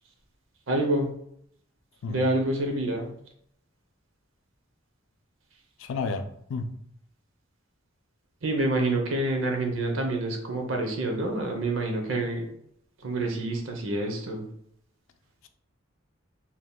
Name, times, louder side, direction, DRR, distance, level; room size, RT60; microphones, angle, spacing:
voice 1, 0.7-1.1 2.1-3.1 8.4-12.4 13.0-14.4, right 2 dB, 80° right, 0.7 m, -27 dB
voice 2, 5.8-6.7, left 4 dB, 70° left, 0.3 m, -32 dB
3.5 x 2.8 x 2.2 m
head